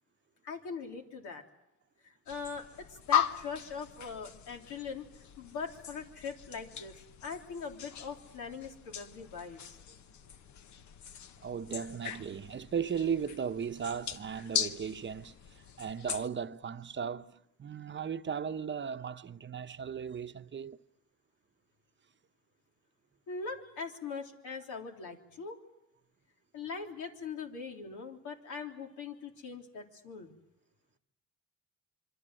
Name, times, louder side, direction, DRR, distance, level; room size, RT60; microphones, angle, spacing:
voice 1, 0.4-1.4 2.0-2.6 2.9-5.1 5.4-9.8 23.3-25.6 26.5-30.3, left 5 dB, 85° left, 3.5 m, -41 dB
sound 1, 2.3-16.3, left 9 dB, 70° left, 1.2 m, -39 dB
voice 2, 11.4-20.8, right 7 dB, 40° right, 0.9 m, -36 dB
26.5 x 23.5 x 7.7 m
cardioid pair, 90°, 30 cm